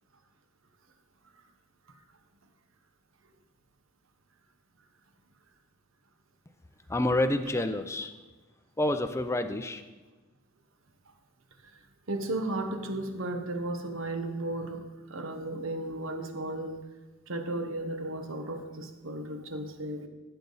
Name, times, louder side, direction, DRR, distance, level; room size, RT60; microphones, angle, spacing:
voice 1, 6.9-8.1 8.8-9.8, left 1 dB, 15° left, 8 dB, 0.4 m, -28 dB
voice 2, 12.1-16.8 17.3-20.1, right 1 dB, 70° right, 6 dB, 1.2 m, -34 dB
15.0 x 6.8 x 4.0 m, 1.2 s
head